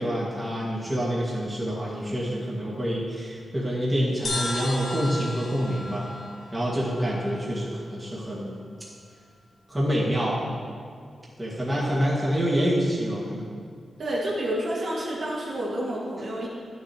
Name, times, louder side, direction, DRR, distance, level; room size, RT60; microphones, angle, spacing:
voice 1, 0.0-6.1 6.5-8.6 9.7-10.4 11.4-13.5, equal, 15° right, -7 dB, 1.8 m, -27 dB
sound 1, 4.2-7.8, left 1 dB, 70° left, 1.6 m, -35 dB
voice 2, 14.0-16.5, right 1 dB, 60° right, -5 dB, 1.8 m, -29 dB
10.5 x 6.6 x 2.9 m, 2.1 s
wide cardioid pair, 130°, 0 cm